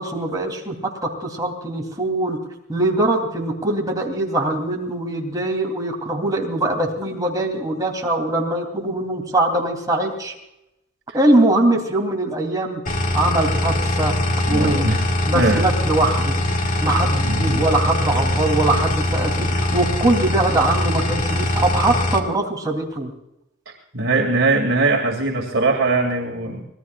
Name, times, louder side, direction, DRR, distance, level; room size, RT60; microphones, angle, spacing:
voice 1, 0.0-2.4 2.7-10.3 11.1-12.8 13.1-14.1 14.5-14.8 15.3-16.3 16.8-23.1, right 2 dB, 20° right, 1 dB, 3.2 m, -22 dB
sound 1, 12.9-22.2, left 1 dB, 40° left, 1.8 m, -22 dB
voice 2, 14.5-15.0 15.3-15.7 16.6-16.8 17.2-17.7 23.9-26.6, right 3 dB, 75° right, 0 dB, 2.5 m, -21 dB
26.0 x 19.5 x 2.5 m, 0.87 s
head